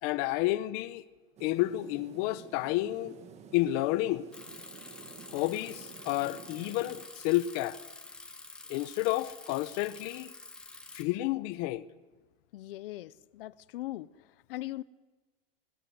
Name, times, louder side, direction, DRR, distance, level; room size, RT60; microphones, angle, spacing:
voice 1, 0.0-1.0 1.4-3.2 3.5-4.3 5.3-7.8 8.7-10.3 10.9-11.9, left 16 dB, 35° left, 0.8 m, -30 dB
sound 1, 1.4-7.1, right 7 dB, 20° right, 1.3 m, -51 dB
Bicycle, 4.3-11.0, left 2 dB, 5° left, 1.4 m, -48 dB
voice 2, 12.5-14.8, left 16 dB, 65° left, 0.8 m, -40 dB
19.5 x 19.5 x 9.5 m
supercardioid pair, 170°, 30 cm